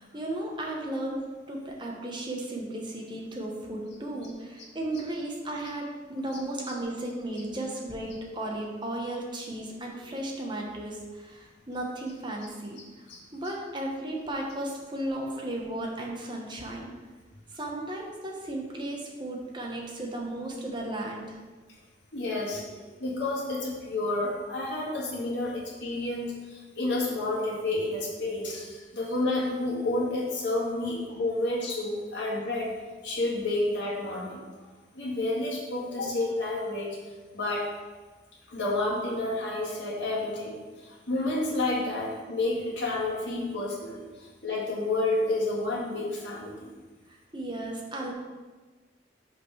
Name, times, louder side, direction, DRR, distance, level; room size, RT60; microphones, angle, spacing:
voice 1, 0.0-13.0 13.3-16.9 17.5-21.4 47.1-48.1, right 1 dB, 25° right, -1 dB, 1.1 m, -35 dB
voice 2, 22.1-32.7 33.0-34.5 34.9-37.0 37.3-37.7 38.5-46.7, left 2 dB, 70° left, -5 dB, 1.9 m, -30 dB
5.7 x 5.2 x 4.8 m, 1.3 s
head